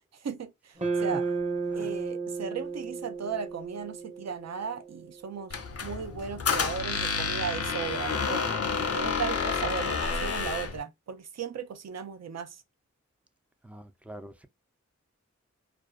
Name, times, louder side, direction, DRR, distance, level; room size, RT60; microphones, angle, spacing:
voice 1, 0.1-1.2 1.7-8.4 8.8-12.6, right 6 dB, 60° right, 0.5 m, -36 dB
sound 1, 0.8-5.1, right 4 dB, 25° right, 0.8 m, -33 dB
Squeak, 5.5-10.8, left 5 dB, 55° left, 0.5 m, -29 dB
voice 2, 13.6-14.5, right 1 dB, 5° right, 0.4 m, -44 dB
2.5 x 2.2 x 2.3 m
wide cardioid pair, 65°, 29 cm